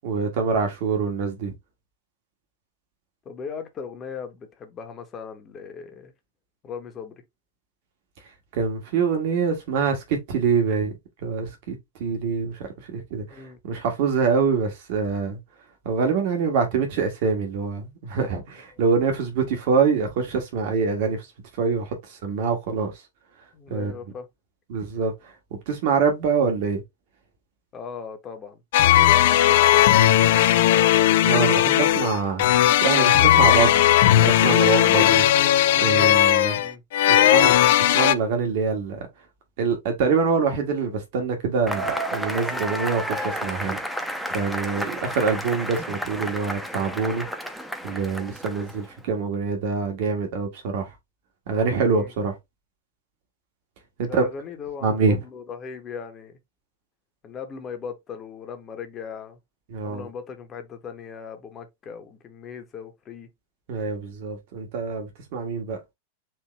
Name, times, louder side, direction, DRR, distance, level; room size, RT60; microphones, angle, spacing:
voice 1, 0.0-1.5 8.2-15.4 15.8-23.0 23.7-23.9 24.7-25.3 25.7-26.8 31.2-33.8 34.2-35.3 35.8-36.6 37.1-37.5 37.8-39.1 39.6-47.3 47.8-51.0 51.5-52.4 54.0-54.2 54.8-55.2 59.7-60.1 63.7-65.8, right 5 dB, 50° right, 1.3 m, -25 dB
voice 2, 3.2-6.1 6.6-7.1 13.3-13.6 23.5-24.3 27.7-28.6 28.9-30.3 33.4-33.7 36.6-36.8 37.1-37.3 51.9-52.1 54.0-56.4 57.2-59.4 59.8-63.3, left 6 dB, 25° left, 1.1 m, -38 dB
sound 1, 28.7-38.1, left 12 dB, 55° left, 0.3 m, -17 dB
Cheering / Applause / Crowd, 41.7-48.9, equal, ahead, 0.8 m, -31 dB
4.5 x 3.0 x 3.1 m
figure-of-eight pair, 90°, 0 cm